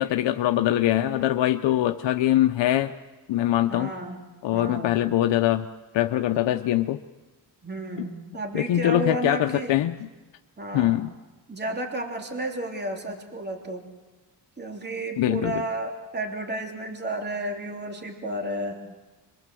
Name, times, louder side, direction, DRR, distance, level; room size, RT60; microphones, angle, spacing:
voice 1, 0.0-2.9 3.3-3.9 4.4-5.7 5.9-7.0 8.0-8.1 8.5-10.1 10.7-11.1 15.2-15.5, left 13 dB, 85° left, 7 dB, 0.9 m, -23 dB
voice 2, 3.7-4.2 4.5-4.9 7.6-9.7 10.6-11.0 11.5-13.8 14.6-18.8, right 1 dB, 25° right, 2 dB, 3.2 m, -32 dB
26.5 x 23.0 x 7.7 m, 1.2 s
cardioid pair, 120°, 43 cm